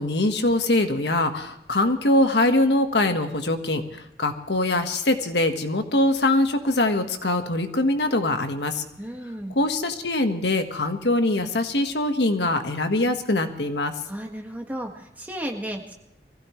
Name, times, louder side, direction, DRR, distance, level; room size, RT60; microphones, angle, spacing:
voice 1, 0.0-8.8 9.5-14.0, left 2 dB, 75° left, 6 dB, 1.5 m, -23 dB
voice 2, 9.0-9.5 14.1-15.9, equal, 10° right, 1 dB, 1.8 m, -34 dB
23.5 x 16.0 x 3.2 m, 0.82 s
head